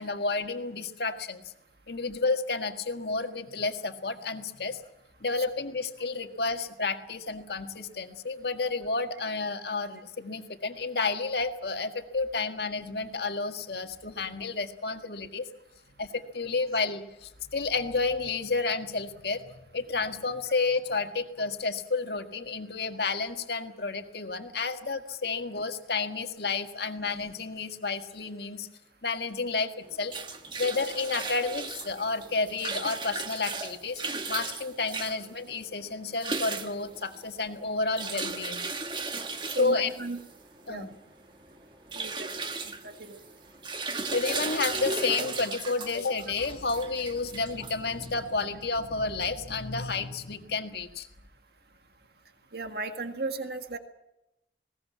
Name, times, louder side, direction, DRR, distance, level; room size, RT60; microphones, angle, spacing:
voice 1, 0.0-1.4 1.9-4.8 5.2-15.5 16.0-19.5 19.7-28.7 29.0-30.1 30.6-34.0 34.3-38.6 39.6-39.9 40.7-40.9 44.1-51.1, left 3 dB, 70° left, 6 dB, 1.8 m, -31 dB
sound 1, 29.8-48.3, right 3 dB, 25° right, 1.5 m, -36 dB
voice 2, 39.6-40.2 40.7-40.9 41.9-42.3 42.8-43.2 52.5-53.8, right 3 dB, 65° right, 7 dB, 1.8 m, -35 dB
20.5 x 18.5 x 8.4 m, 0.88 s
head